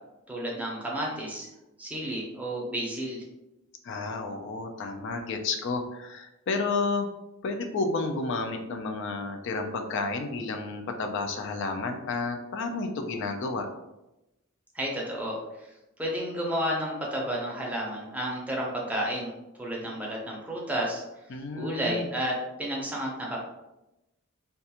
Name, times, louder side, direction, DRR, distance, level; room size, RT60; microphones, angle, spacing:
voice 1, 0.3-1.5 1.8-3.2 14.7-15.7 16.0-19.3 19.6-21.0 21.6-23.4, equal, 5° right, -3 dB, 0.5 m, -31 dB
voice 2, 3.8-7.1 7.4-13.7 21.3-22.1, left 3 dB, 60° left, 5 dB, 0.4 m, -31 dB
2.4 x 2.3 x 2.8 m, 0.94 s
head